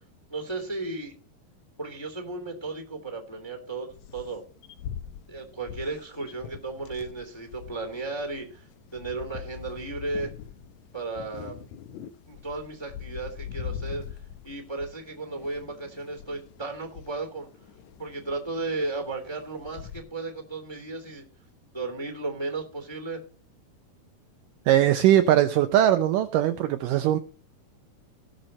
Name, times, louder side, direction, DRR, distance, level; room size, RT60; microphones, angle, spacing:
voice 1, 0.3-1.1 1.8-4.4 5.3-8.7 8.9-10.3 10.9-11.5 12.3-14.2 14.4-17.5 18.0-21.2 21.7-23.2, right 3 dB, 10° left, 5 dB, 1.8 m, -34 dB
sound 1, 3.9-20.0, left 9 dB, 75° left, 1.7 m, -43 dB
voice 2, 24.7-27.2, right 12 dB, 80° right, 9 dB, 2.0 m, -20 dB
18.5 x 6.5 x 4.2 m, 0.37 s
omnidirectional pair, 4.4 m